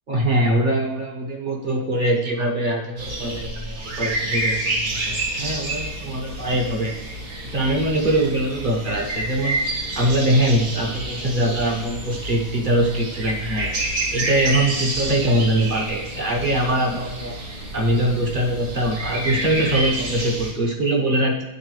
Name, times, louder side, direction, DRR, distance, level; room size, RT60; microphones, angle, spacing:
voice 1, 0.1-6.9 7.4-9.6 9.9-13.7 14.1-17.4 17.7-21.4, right 1 dB, 40° right, 1 dB, 0.9 m, -22 dB
sound 1, 3.0-20.5, right 1 dB, 75° right, 1.8 m, -29 dB
9.1 x 3.7 x 3.2 m, 1.0 s
omnidirectional pair, 1.7 m